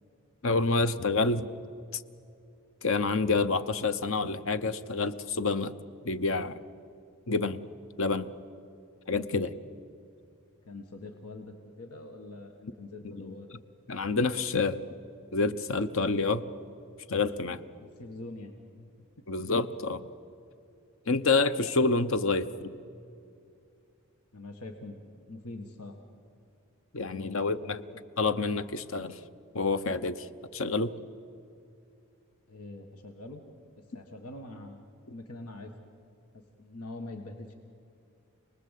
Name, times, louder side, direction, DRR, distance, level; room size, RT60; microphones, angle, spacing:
voice 1, 0.4-1.5 1.9-2.0 2.8-5.7 6.0-6.6 7.3-7.6 8.0-8.3 9.1-9.5 13.1-13.3 13.9-14.8 15.3-16.4 17.1-17.6 19.3-20.1 21.1-22.7 26.9-27.8 28.2-29.2 29.5-30.9, left 3 dB, 60° left, 13 dB, 0.9 m, -28 dB
voice 2, 10.7-13.5 16.4-16.5 18.0-18.5 18.8-18.9 19.2-19.3 24.3-25.0 25.3-26.0 27.1-27.8 32.5-33.4 33.9-35.7 36.3-37.5, left 2 dB, 90° left, 4 dB, 1.8 m, -44 dB
28.0 x 20.0 x 8.4 m, 2.6 s
head